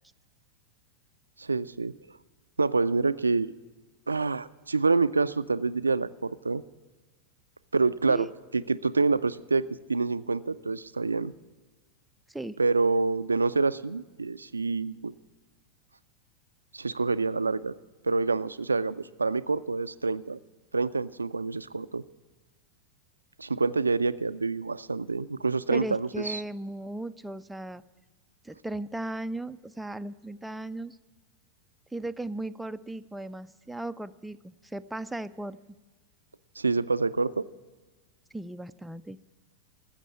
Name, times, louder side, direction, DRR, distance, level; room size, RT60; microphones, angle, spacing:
voice 1, 1.4-1.9 2.6-3.6 4.1-6.6 7.7-8.3 8.5-9.6 9.9-11.3 12.6-15.1 16.7-17.7 18.0-20.4 20.7-22.0 23.4-26.4 36.6-37.5, right 4 dB, 80° right, 14 dB, 0.3 m, -27 dB
voice 2, 25.7-27.8 28.4-31.0 31.9-35.6 38.3-39.2, right 1 dB, 5° right, 11 dB, 0.4 m, -36 dB
14.5 x 7.4 x 8.4 m, 1.3 s
figure-of-eight pair, 90°, 0 cm